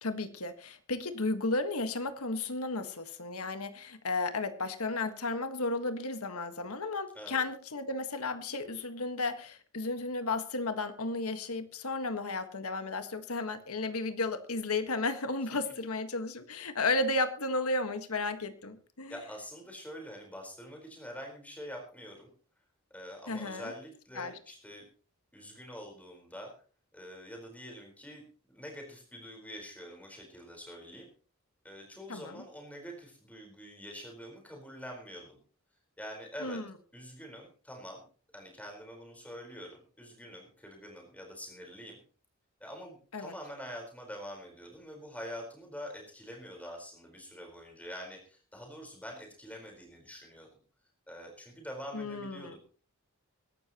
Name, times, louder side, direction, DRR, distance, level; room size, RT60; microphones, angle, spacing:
voice 1, 0.0-19.2 23.3-23.7 24.2-24.3 32.1-32.4 36.4-36.6 43.1-43.3 51.9-52.6, left 3 dB, 85° left, 9 dB, 1.6 m, -33 dB
voice 2, 7.1-7.4 19.1-22.3 22.9-24.8 25.3-26.5 26.9-31.1 31.6-35.4 36.0-36.6 36.9-38.0 38.3-42.0 42.6-50.5 51.1-52.6, equal, 5° left, 1 dB, 4.3 m, -45 dB
23.5 x 12.0 x 3.0 m, 0.40 s
head